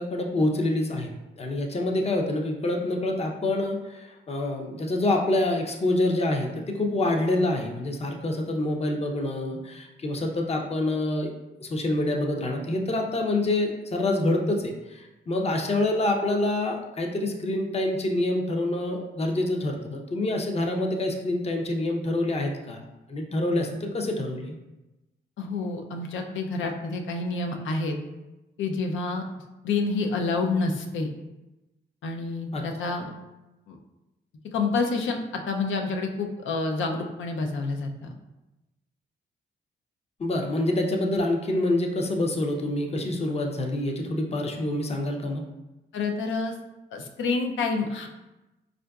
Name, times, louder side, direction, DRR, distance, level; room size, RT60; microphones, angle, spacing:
voice 1, 0.0-11.3 11.6-22.8 23.1-24.6 32.5-32.9 40.2-45.4, left 1 dB, 30° left, 2 dB, 0.6 m, -26 dB
voice 2, 25.4-27.9 28.6-29.2 29.6-31.1 32.0-33.1 33.7-33.8 34.5-35.2 35.5-38.1 45.9-46.5 46.9-48.1, left 3 dB, 75° left, 3 dB, 0.5 m, -28 dB
4.5 x 2.5 x 2.3 m, 1.0 s
cardioid pair, 65°, 20 cm